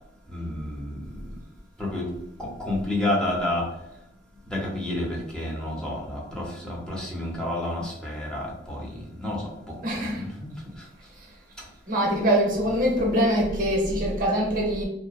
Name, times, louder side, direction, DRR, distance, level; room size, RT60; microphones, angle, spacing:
voice 1, 0.3-1.0 1.8-2.1 2.4-3.6 4.5-8.9 9.2-9.4 10.2-10.5, left 1 dB, 5° left, 0.6 m, -29 dB
voice 2, 9.8-10.3 11.2-11.3 11.9-14.9, equal, 50° right, 0.8 m, -24 dB
2.8 x 2.0 x 2.4 m
head